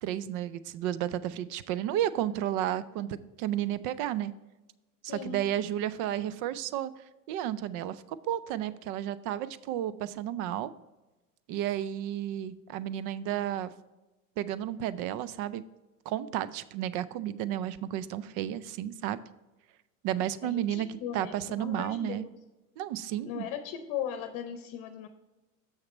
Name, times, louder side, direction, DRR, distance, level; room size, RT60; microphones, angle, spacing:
voice 1, 0.0-4.3 5.0-6.9 7.3-10.7 11.5-13.7 14.4-15.6 16.1-19.2 20.0-22.2 22.8-23.5, right 11 dB, 45° right, 17 dB, 0.5 m, -32 dB
voice 2, 5.1-5.4 20.4-22.3 23.3-25.1, left 9 dB, 50° left, 8 dB, 0.8 m, -38 dB
7.3 x 6.5 x 4.1 m, 1.1 s
hypercardioid pair, 110°, 47 cm